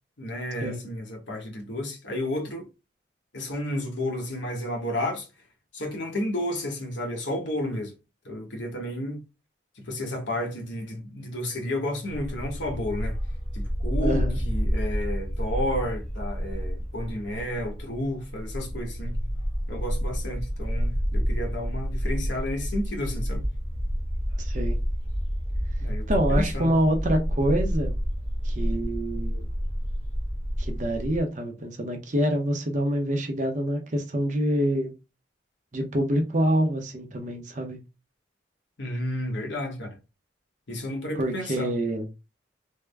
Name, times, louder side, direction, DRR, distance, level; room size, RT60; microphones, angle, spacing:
voice 1, 0.2-2.7 3.3-5.3 5.7-7.9 8.2-9.2 9.9-13.2 13.5-19.2 19.7-23.4 25.8-26.7 38.8-40.0 40.7-41.7, left 1 dB, 75° left, 1.1 m, -32 dB
Bark, 12.1-31.2, equal, 35° left, 1.3 m, -29 dB
voice 2, 14.0-14.4 24.4-24.8 26.1-27.9 28.4-29.5 30.6-34.9 35.7-37.8 41.2-42.1, right 1 dB, 40° right, 0.7 m, -26 dB
3.5 x 2.1 x 3.3 m
head